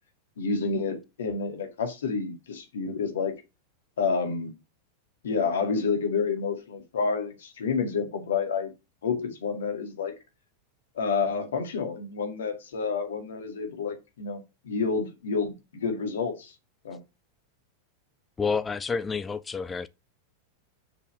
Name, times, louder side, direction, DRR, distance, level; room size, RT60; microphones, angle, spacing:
voice 1, 0.4-3.3 4.0-4.6 5.2-8.7 9.0-10.1 11.0-16.5 16.8-17.0, left 5 dB, 65° left, 2.0 m, -29 dB
voice 2, 18.4-19.9, left 5 dB, 15° left, 0.5 m, -29 dB
6.9 x 4.8 x 6.2 m
figure-of-eight pair, 90°, 0 cm